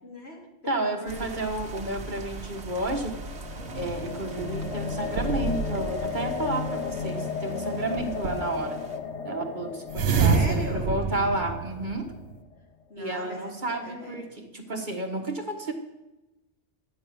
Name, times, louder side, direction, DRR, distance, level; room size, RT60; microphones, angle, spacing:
voice 1, 0.0-1.4 10.2-10.9 12.9-14.2, equal, 65° left, -2 dB, 3.7 m, -38 dB
voice 2, 0.6-3.2 3.7-8.8 9.2-12.1 13.0-15.7, right 2 dB, 45° right, 3 dB, 1.6 m, -31 dB
sound 1, 1.1-9.0, right 3 dB, 70° right, 1.5 m, -42 dB
sound 2, 2.3-12.4, left 5 dB, 80° left, 1.2 m, -35 dB
sound 3, 3.6-6.0 8.0-8.6 9.9-12.4, right 5 dB, 85° right, 1.1 m, -28 dB
13.0 x 9.8 x 6.9 m, 1.0 s
omnidirectional pair, 1.2 m